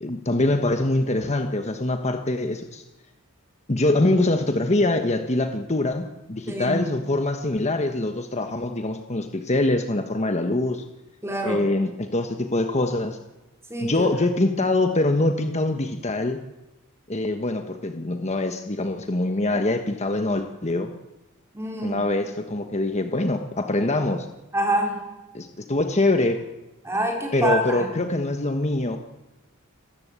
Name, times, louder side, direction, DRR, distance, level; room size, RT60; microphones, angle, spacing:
voice 1, 0.0-2.8 3.7-10.8 11.4-13.2 13.8-16.4 17.1-20.9 21.8-24.3 25.3-26.4 27.3-29.0, left 2 dB, 30° left, 6 dB, 1.3 m, -24 dB
voice 2, 6.5-6.8 11.2-11.6 13.7-14.4 21.5-22.0 24.5-25.0 26.8-28.0, right 1 dB, 10° right, 1 dB, 4.7 m, -26 dB
27.0 x 15.0 x 8.3 m, 1.1 s
head